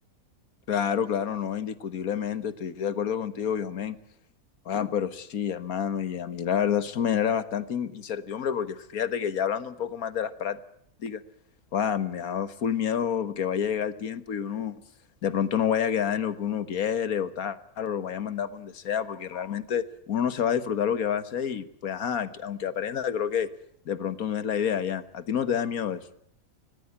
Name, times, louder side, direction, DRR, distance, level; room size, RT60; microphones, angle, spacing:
voice 1, 0.7-4.0 4.7-10.6 11.0-11.2 11.7-14.8 15.2-23.5 23.9-26.0, left 8 dB, 75° left, 14 dB, 1.8 m, -28 dB
25.0 x 19.0 x 8.6 m, 0.68 s
omnidirectional pair, 1.5 m